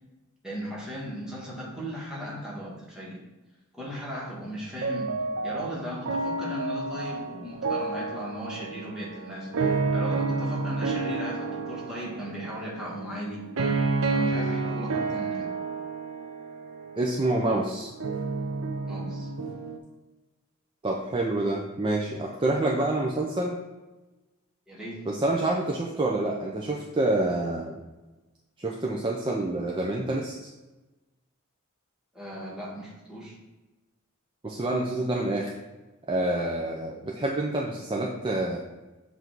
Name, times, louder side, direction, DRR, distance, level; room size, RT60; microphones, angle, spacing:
voice 1, 0.4-3.2 3.7-5.1 5.4-13.4 14.1-15.5 18.8-19.3 24.7-25.0 32.1-33.4, equal, 5° right, -6 dB, 1.4 m, -37 dB
sound 1, 4.8-19.8, right 3 dB, 65° right, 0.6 m, -30 dB
voice 2, 17.0-17.9 20.8-23.6 25.1-27.8 28.6-30.4 34.4-35.5 36.1-38.6, right 2 dB, 25° right, -2 dB, 0.5 m, -27 dB
7.9 x 2.7 x 4.5 m, 1.1 s
head